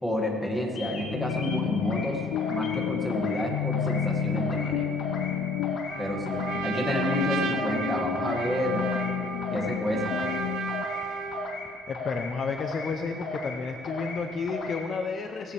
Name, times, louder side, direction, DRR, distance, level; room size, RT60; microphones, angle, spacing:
voice 1, 0.0-2.2 2.5-4.9 6.0-8.9 9.5-10.1, equal, 5° left, -1 dB, 2.0 m, -30 dB
sound 1, 0.8-1.0 1.3-2.1 2.4-2.8 3.1-3.5 3.7-4.1 4.4-4.7 5.0-5.3 5.6-6.0 6.3-6.6 6.9-7.2 7.5-7.9 8.1-8.5 8.8-9.1 9.4-9.8 10.0-10.4 10.7-11.0 11.3-11.7 11.9-12.3 12.6-12.9 13.2-13.6 13.8-14.2 14.5-14.8, left 2 dB, 65° left, 2.5 m, -36 dB
sound 2, 0.9-10.8, left 11 dB, 80° left, 0.3 m, -31 dB
Trumpet, 5.9-11.6, right 6 dB, 60° right, 1.2 m, -34 dB
voice 2, 11.9-15.5, left 5 dB, 35° left, 5 dB, 0.7 m, -31 dB
17.5 x 16.5 x 3.4 m, 2.9 s
cardioid pair, 155°, 0 cm